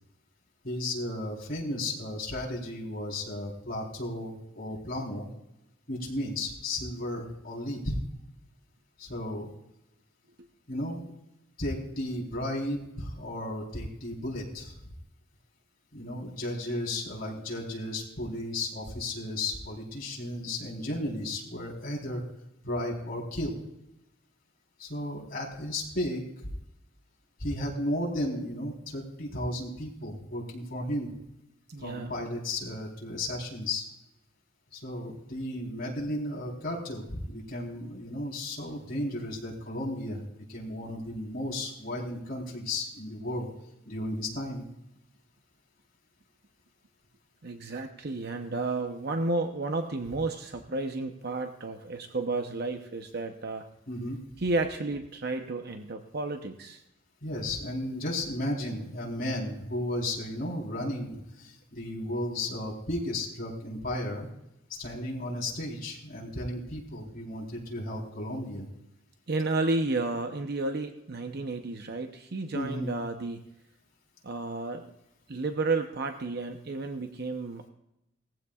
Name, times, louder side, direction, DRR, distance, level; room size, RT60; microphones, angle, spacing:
voice 1, 0.6-5.3 5.9-7.9 9.0-9.5 10.7-11.0 11.6-14.7 15.9-22.2 22.6-23.6 24.8-26.2 27.4-31.1 31.8-33.8 34.7-43.5 43.9-44.6 53.9-54.2 57.2-64.3 64.7-68.7 72.5-73.0, left 1 dB, 50° left, -2 dB, 4.0 m, -34 dB
voice 2, 31.7-32.1 47.4-53.7 54.4-56.8 69.3-73.4 74.2-74.9 75.3-77.7, right 3 dB, 55° right, 6 dB, 0.8 m, -32 dB
19.5 x 15.0 x 2.4 m, 0.86 s
head